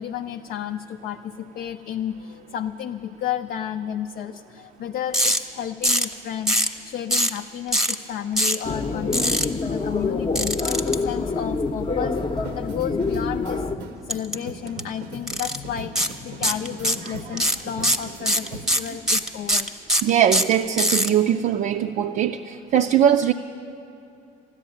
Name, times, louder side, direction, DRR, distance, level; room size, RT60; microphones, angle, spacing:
voice 1, 0.0-13.7 14.0-19.8, left 9 dB, 60° left, 5 dB, 0.5 m, -32 dB
sound 1, 5.1-5.4 5.8-6.1 6.5-6.7 7.1-7.4 7.7-7.9 8.4-8.6 9.1-9.4 10.4-10.9 14.1-14.4 14.7-14.8 15.3-15.6 16.0-16.1 16.4-17.1 17.4-21.1, equal, 5° right, 0.8 m, -21 dB
sound 2, 8.6-13.8, left 3 dB, 30° left, 0.8 m, -26 dB
sound 3, 12.2-18.9, right 4 dB, 85° right, 0.8 m, -41 dB
voice 2, 20.0-23.3, right 9 dB, 55° right, 5 dB, 0.5 m, -20 dB
13.5 x 11.5 x 9.2 m, 2.6 s
cardioid pair, 110°, 17 cm